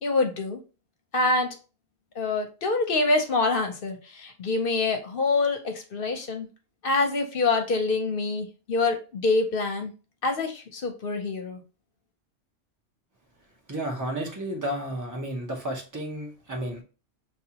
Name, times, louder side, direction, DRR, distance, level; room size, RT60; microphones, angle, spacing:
voice 1, 0.0-0.6 1.1-1.5 2.2-6.5 6.8-9.9 10.2-11.6, left 3 dB, 55° left, 4 dB, 0.9 m, -26 dB
voice 2, 13.7-16.8, right 1 dB, 15° right, 1 dB, 0.9 m, -32 dB
6.5 x 2.3 x 2.9 m, 0.34 s
omnidirectional pair, 1.2 m